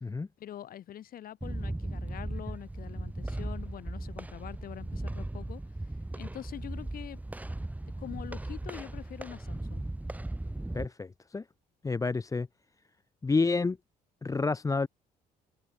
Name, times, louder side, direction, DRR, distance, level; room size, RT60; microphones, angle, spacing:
voice 1, 0.4-5.6 6.1-7.2 8.0-9.8, left 11 dB, 60° left, 7.1 m, -44 dB
sound 1, 1.4-10.9, right 1 dB, 10° right, 6.7 m, -37 dB
voice 2, 10.7-11.4 11.8-12.5 13.2-13.8 14.2-14.9, left 4 dB, 20° left, 1.3 m, -29 dB
cardioid pair, 110°, 17 cm